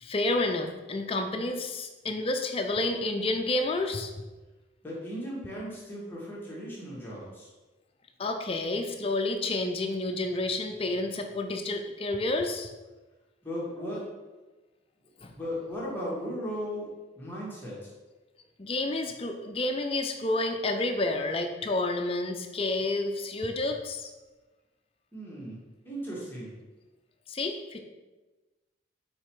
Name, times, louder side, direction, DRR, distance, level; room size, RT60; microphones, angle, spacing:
voice 1, 0.0-4.1 8.2-12.7 15.2-15.3 18.6-24.1 27.3-27.8, left 2 dB, 30° left, 5 dB, 0.5 m, -30 dB
voice 2, 4.8-7.5 13.4-14.1 15.3-16.9 17.1-17.9 25.1-25.6 25.8-26.5, equal, 10° left, -6 dB, 1.4 m, -36 dB
5.3 x 4.2 x 4.6 m, 1.2 s
head